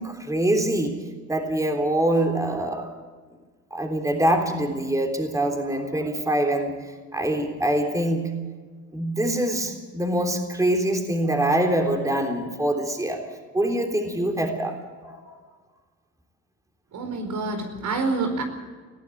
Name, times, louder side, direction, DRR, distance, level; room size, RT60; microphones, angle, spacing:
voice 1, 0.0-2.9 3.7-8.3 8.9-15.4, right 1 dB, 10° right, 4 dB, 3.5 m, -25 dB
voice 2, 16.9-18.4, right 3 dB, 75° right, 5 dB, 4.7 m, -27 dB
21.0 x 15.0 x 8.4 m, 1.5 s
cardioid pair, 90°, 30 cm